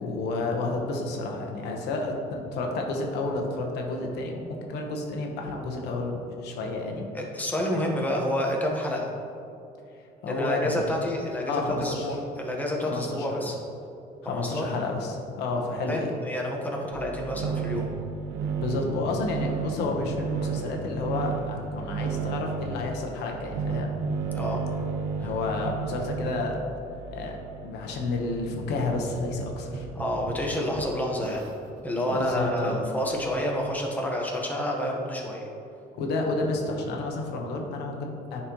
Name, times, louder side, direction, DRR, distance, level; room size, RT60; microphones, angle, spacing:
voice 1, 0.0-7.1 9.9-10.9 11.4-12.2 12.9-13.5 14.2-16.1 18.6-23.9 25.2-26.6 27.1-27.4 27.6-29.9 32.0-32.8 35.9-38.4, left 2 dB, 80° left, 1 dB, 1.1 m, -30 dB
voice 2, 7.1-9.1 10.3-13.5 14.2-14.7 15.9-17.9 24.3-24.6 29.9-31.4 31.8-35.5, left 1 dB, 10° left, -1 dB, 1.1 m, -29 dB
sound 1, 16.9-26.5 26.8-31.5 32.0-32.3 33.1-33.4, right 6 dB, 90° right, 0.6 m, -33 dB
10.0 x 4.4 x 3.0 m, 2.8 s
cardioid pair, 110°, 17 cm